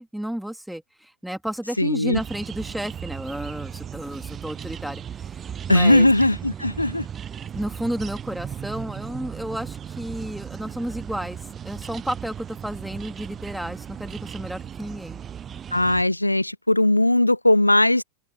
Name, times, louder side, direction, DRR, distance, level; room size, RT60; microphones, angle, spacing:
voice 1, 0.0-6.1 7.5-11.4 11.6-15.2, right 1 dB, ahead, 3.1 m, -32 dB
voice 2, 1.8-2.2 5.7-7.1 15.7-18.0, left 1 dB, 85° left, 0.8 m, -19 dB
sound 1, 2.1-16.0, right 8 dB, 25° right, 1.0 m, -36 dB
open air
figure-of-eight pair, 90°, 0 cm